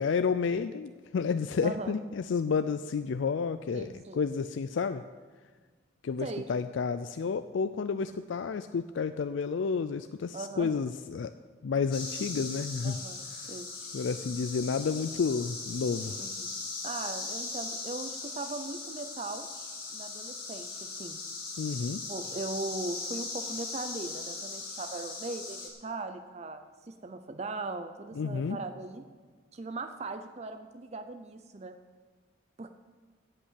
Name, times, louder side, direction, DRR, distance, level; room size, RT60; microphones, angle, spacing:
voice 1, 0.0-5.0 6.0-11.3 11.6-13.0 13.4-13.5 13.9-16.2 21.6-22.0 28.2-28.6, left 5 dB, 65° left, 11 dB, 0.4 m, -31 dB
voice 2, 1.6-1.9 3.7-4.2 6.2-6.5 10.3-10.7 12.8-13.7 16.2-16.5 16.8-19.5 19.9-21.2 22.1-29.0 29.5-31.8 32.6-32.7, right 3 dB, 35° right, 8 dB, 0.5 m, -39 dB
sound 1, 11.9-25.7, left 3 dB, 45° left, 2.4 m, -39 dB
14.0 x 5.5 x 8.2 m, 1.4 s
head